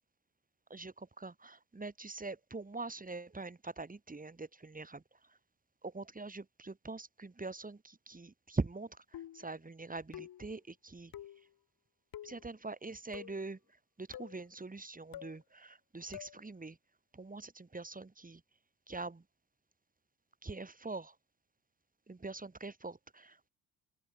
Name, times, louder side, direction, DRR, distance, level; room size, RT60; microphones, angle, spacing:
voice 1, 0.7-5.4 5.8-11.1 12.2-13.6 14.0-16.8 17.1-18.4 18.9-19.2 20.4-21.2 22.1-23.5, right 3 dB, 20° right, 7.3 m, -43 dB
sound 1, 9.1-9.5 10.1-10.5 11.1-11.4 12.1-12.4 13.1-13.5 14.1-14.4 15.1-15.4 16.1-16.4, left 11 dB, 50° left, 3.1 m, -48 dB
open air
figure-of-eight pair, 55°, 46 cm